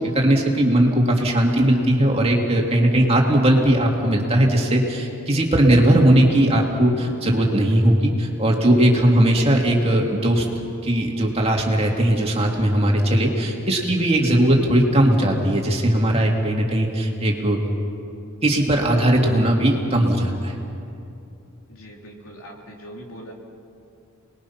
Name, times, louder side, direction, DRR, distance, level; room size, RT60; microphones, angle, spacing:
voice 1, 0.0-10.5 10.8-17.6 18.4-20.6, right 1 dB, 25° right, 0 dB, 2.5 m, -18 dB
voice 2, 21.7-23.3, equal, 70° left, -1 dB, 3.5 m, -41 dB
30.0 x 21.0 x 5.8 m, 2.6 s
head